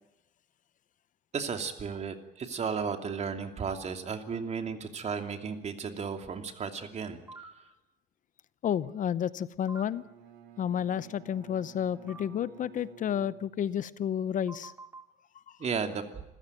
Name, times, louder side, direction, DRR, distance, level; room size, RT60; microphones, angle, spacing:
voice 1, 1.3-7.2 15.6-16.0, right 6 dB, 40° right, 6 dB, 2.8 m, -34 dB
sound 1, 7.3-7.5 9.7-9.8 12.1-12.2 14.5-15.0, right 3 dB, 15° right, 4.0 m, -45 dB
voice 2, 8.6-10.0 10.6-14.7, left 9 dB, 50° left, 17 dB, 0.8 m, -31 dB
Bowed string instrument, 9.8-14.0, right 8 dB, 75° right, 3.2 m, -53 dB
27.5 x 15.5 x 9.2 m, 0.93 s
cardioid pair, 110°, 17 cm